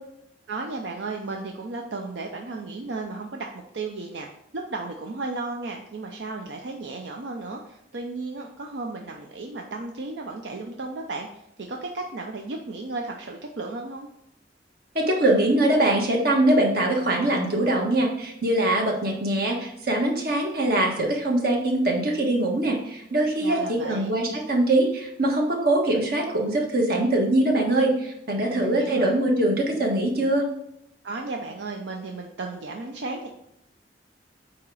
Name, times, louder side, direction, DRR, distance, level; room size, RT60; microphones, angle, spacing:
voice 1, 0.5-3.5 3.7-4.3 4.5-14.1 23.4-24.1 28.4-29.2 31.0-33.3, right 3 dB, 80° right, 2 dB, 0.6 m, -34 dB
voice 2, 14.9-30.5, right 1 dB, 60° right, 0 dB, 1.4 m, -22 dB
8.6 x 2.9 x 4.7 m, 0.79 s
head